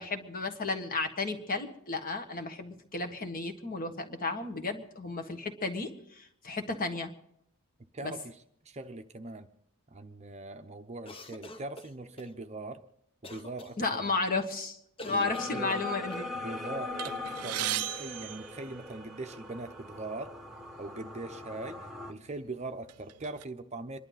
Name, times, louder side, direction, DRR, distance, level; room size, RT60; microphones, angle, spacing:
voice 1, 0.0-7.1 8.0-8.1 13.8-16.3, left 3 dB, 40° left, 1.6 m, -33 dB
voice 2, 7.9-8.4 8.6-9.5 9.9-12.8 13.2-14.1 15.0-15.8 16.4-20.4 20.8-24.0, right 2 dB, 30° right, 0.7 m, -41 dB
sound 1, 11.0-12.3 13.2-13.7 15.0-16.3, left 2 dB, 25° left, 0.8 m, -45 dB
sound 2, 15.2-22.1, left 2 dB, ahead, 1.4 m, -40 dB
sound 3, 17.0-19.3 20.2-20.3 20.6-20.8 21.6-21.8 22.3-23.4, right 14 dB, 80° right, 0.5 m, -37 dB
27.0 x 11.5 x 4.0 m
head